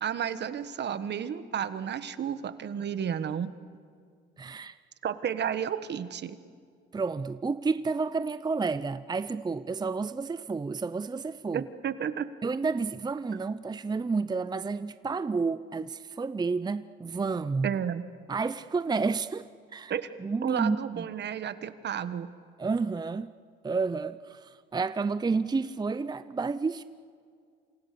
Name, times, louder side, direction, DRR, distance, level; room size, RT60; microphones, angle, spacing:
voice 1, 0.0-3.5 5.0-6.4 11.5-12.3 17.6-18.0 19.9-20.1 20.4-22.3, right 8 dB, 60° right, 1.4 m, -32 dB
voice 2, 4.4-4.8 6.9-11.7 12.4-17.7 18.3-19.9 20.2-21.1 22.6-23.3 23.6-26.8, right 4 dB, 20° right, 0.6 m, -30 dB
28.0 x 27.5 x 6.9 m
cardioid pair, 90°, 20 cm